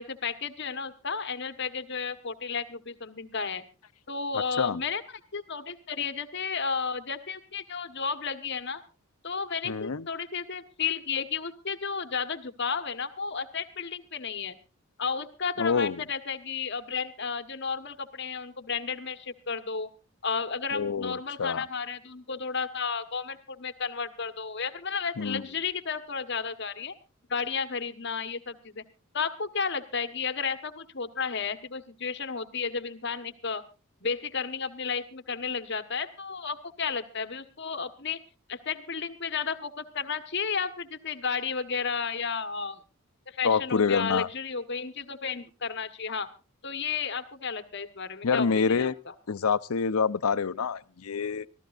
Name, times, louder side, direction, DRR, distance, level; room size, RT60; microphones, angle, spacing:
voice 1, 0.0-3.6 4.1-5.0 5.3-8.8 9.2-14.6 15.0-19.9 20.2-26.9 27.3-28.8 29.1-33.6 34.0-38.2 38.5-42.8 43.3-46.3 46.6-48.9, left 5 dB, 55° left, 1.3 m, -33 dB
voice 2, 4.3-4.8 9.6-10.1 15.6-16.0 20.7-21.7 25.2-25.5 43.4-44.3 48.2-49.0 49.3-51.5, left 5 dB, 90° left, 0.7 m, -27 dB
25.0 x 14.5 x 2.5 m
head